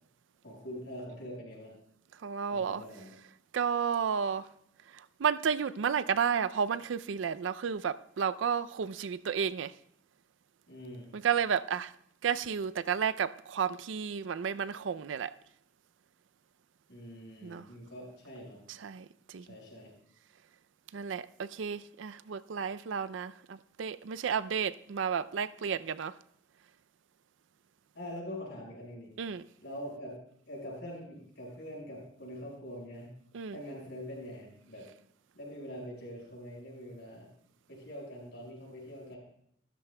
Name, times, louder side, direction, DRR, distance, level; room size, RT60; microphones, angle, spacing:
voice 1, 0.4-1.8 2.5-3.1 10.7-11.1 16.9-18.6 19.4-19.9 27.9-29.1 29.6-30.2 30.5-33.1 33.5-34.9 35.3-37.3 37.7-39.2, equal, 70° left, 5.1 m, -44 dB
voice 2, 2.2-2.8 3.5-4.5 4.9-9.7 11.1-11.9 12.2-15.3 17.4-17.6 18.8-19.4 20.9-26.1 29.2-29.4 33.3-33.6, right 7 dB, 85° right, 0.4 m, -32 dB
14.5 x 13.0 x 2.2 m
head